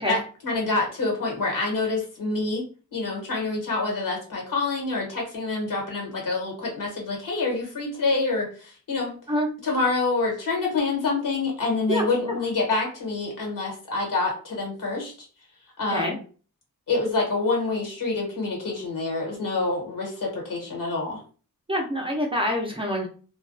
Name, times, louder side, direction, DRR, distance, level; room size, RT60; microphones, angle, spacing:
voice 1, 0.0-9.2 9.6-15.1 15.8-16.2 16.9-21.2, left 3 dB, 75° left, -1 dB, 1.2 m, -27 dB
voice 2, 21.7-23.1, equal, 15° right, 0 dB, 0.5 m, -26 dB
2.3 x 2.2 x 2.5 m, 0.39 s
wide cardioid pair, 125°, 33 cm